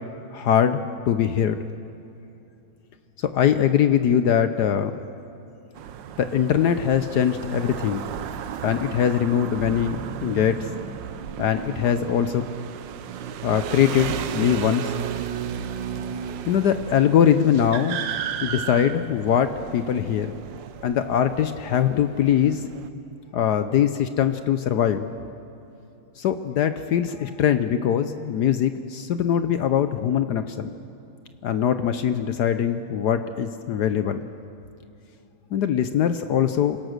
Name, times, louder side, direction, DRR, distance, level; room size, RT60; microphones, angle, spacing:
voice 1, 0.3-1.6 3.3-5.0 6.2-8.0 8.6-10.6 11.4-12.4 13.4-14.9 16.5-18.0 18.4-20.3 20.8-22.6 23.3-25.1 26.2-30.7 31.4-34.2 35.5-36.8, left 9 dB, 70° left, 10 dB, 1.0 m, -22 dB
sound 1, 5.8-22.9, right 9 dB, 65° right, 1.4 m, -34 dB
27.0 x 17.0 x 6.6 m, 2.8 s
omnidirectional pair, 2.4 m